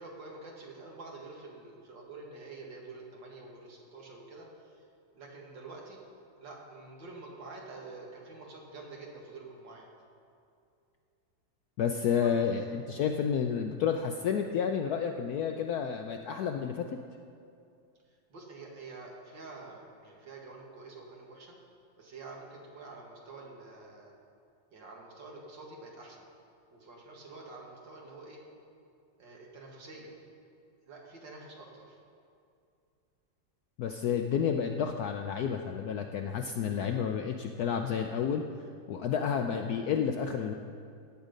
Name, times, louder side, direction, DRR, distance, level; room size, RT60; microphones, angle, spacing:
voice 1, 0.0-4.8 5.1-6.0 6.4-9.9 12.2-12.8 18.3-21.6 22.0-24.1 24.7-26.3 26.7-28.4 29.2-30.1 30.8-32.0, right 3 dB, 70° right, -1 dB, 2.5 m, -47 dB
voice 2, 11.8-16.9 33.8-38.4 38.9-40.5, left 7 dB, 70° left, 5 dB, 0.9 m, -30 dB
16.5 x 8.2 x 5.2 m, 2.5 s
omnidirectional pair, 2.1 m